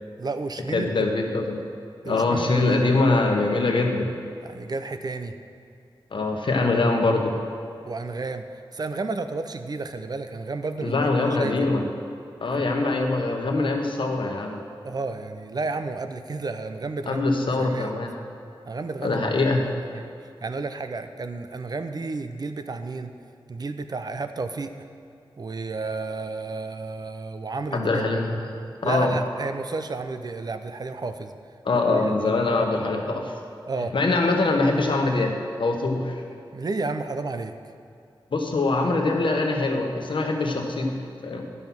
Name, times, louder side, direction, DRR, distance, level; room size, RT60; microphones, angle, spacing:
voice 1, 0.2-1.1 2.0-2.9 4.4-5.4 7.8-11.5 12.5-12.7 14.8-17.2 17.6-17.9 18.6-19.2 19.6-23.2 23.5-24.7 25.4-28.0 28.8-31.3 31.7-32.4 33.6-33.9 36.5-37.5, right 3 dB, 50° right, 9 dB, 0.6 m, -32 dB
voice 2, 0.7-1.6 2.0-4.1 6.1-7.3 10.8-11.8 12.4-14.6 17.1-18.1 19.0-19.6 27.7-29.1 31.6-33.4 33.9-36.2 38.3-41.4, left 3 dB, 65° left, 2 dB, 1.1 m, -23 dB
10.5 x 5.6 x 6.0 m, 2.5 s
wide cardioid pair, 85°, 9 cm